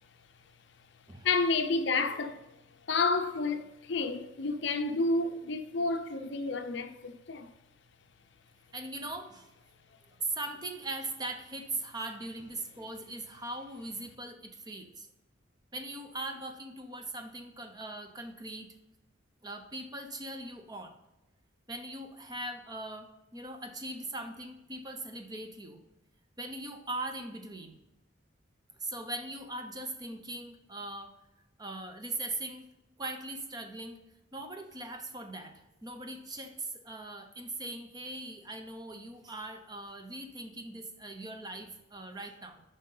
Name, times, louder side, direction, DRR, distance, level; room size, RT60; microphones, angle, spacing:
voice 1, 0.1-7.5, left 3 dB, 55° left, 0.6 m, -31 dB
voice 2, 8.7-9.5 10.2-15.1 15.7-18.7 19.4-20.9 21.7-25.8 26.4-27.8 28.8-31.1 31.6-32.7 33.0-34.0 34.3-42.6, right 2 dB, 20° right, 0.6 m, -40 dB
7.5 x 5.3 x 3.8 m
head